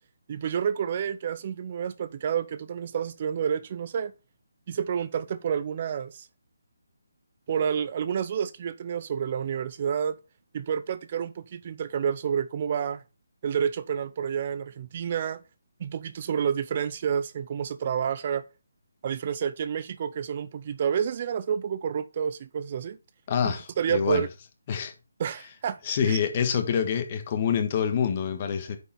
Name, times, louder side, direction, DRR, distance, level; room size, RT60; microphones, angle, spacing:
voice 1, 0.3-4.1 4.7-6.3 7.5-10.2 10.5-13.0 13.4-15.4 15.8-18.4 19.0-23.0 23.4-24.3 25.2-25.8 26.1-26.2, right 8 dB, 30° right, 0.5 m, -29 dB
voice 2, 23.3-24.2 24.7-24.9 25.8-28.8, left 7 dB, 30° left, 1.5 m, -26 dB
8.9 x 5.2 x 4.2 m
hypercardioid pair, 170°, 0 cm